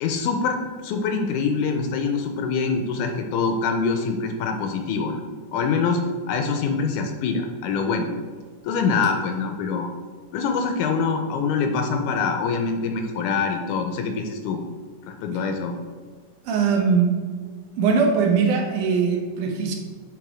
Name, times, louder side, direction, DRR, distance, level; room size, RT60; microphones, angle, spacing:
voice 1, 0.0-5.2 5.5-6.0 6.3-8.1 8.6-9.9 10.3-14.6 15.1-15.7, left 5 dB, 80° left, 4 dB, 1.9 m, -24 dB
voice 2, 16.5-17.1 17.8-19.7, right 5 dB, 75° right, 1 dB, 2.3 m, -20 dB
8.5 x 3.3 x 4.9 m, 1.5 s
omnidirectional pair, 3.7 m